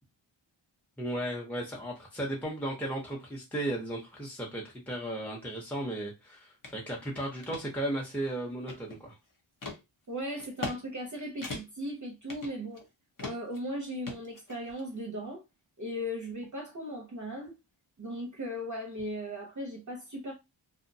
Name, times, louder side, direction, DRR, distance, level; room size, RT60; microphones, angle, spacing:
voice 1, 1.0-9.2, right 1 dB, 5° left, 0.7 m, -35 dB
sound 1, 6.6-6.8 7.2-7.6 8.2-9.1 9.6-9.8 10.4-10.8 11.0-11.1 11.4-11.9 12.3-12.9 13.2-13.6 14.1-14.9, left 3 dB, 40° left, 0.8 m, -40 dB
voice 2, 10.1-12.8 13.2-15.4 15.8-17.5 18.0-20.3, equal, 40° right, 0.6 m, -37 dB
2.6 x 2.1 x 2.6 m
wide cardioid pair, 45°, 49 cm